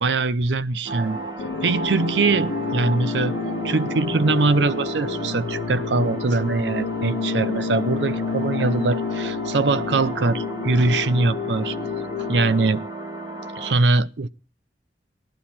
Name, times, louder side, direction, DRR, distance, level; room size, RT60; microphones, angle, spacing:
voice 1, 0.0-1.2 1.6-3.3 3.6-11.8 12.3-12.9 13.6-14.3, right 3 dB, 85° right, 0.7 m, -22 dB
sound 1, 0.9-13.7, right 2 dB, 25° right, 1.6 m, -35 dB
sound 2, 0.9-1.3 1.6-10.4, right 2 dB, 55° right, 7.5 m, -38 dB
sound 3, 1.4-12.7, left 5 dB, 85° left, 0.6 m, -29 dB
18.5 x 11.5 x 4.3 m
head